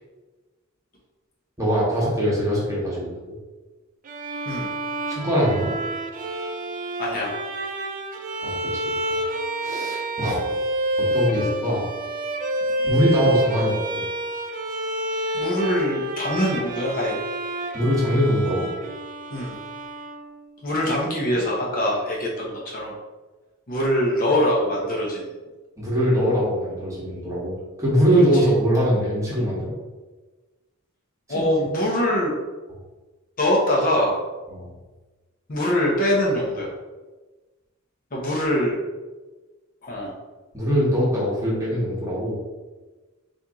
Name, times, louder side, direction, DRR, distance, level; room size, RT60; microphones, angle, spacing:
voice 1, 1.6-3.4 5.1-5.7 8.4-10.4 11.0-11.8 12.9-14.0 17.7-18.7 25.8-27.5 27.8-29.7 31.3-31.4 34.5-34.7 40.5-42.3, equal, 15° right, -6 dB, 1.2 m, -22 dB
Bowed string instrument, 4.1-20.6, right 1 dB, 40° right, 0.4 m, -28 dB
voice 2, 7.0-7.4 15.3-17.2 19.3-19.5 20.6-22.9 23.7-25.3 28.1-28.2 31.3-32.3 33.4-34.2 35.5-36.7 38.1-38.8 39.8-40.1, left 1 dB, 45° left, -3 dB, 0.9 m, -23 dB
4.3 x 2.6 x 3.6 m, 1.2 s
head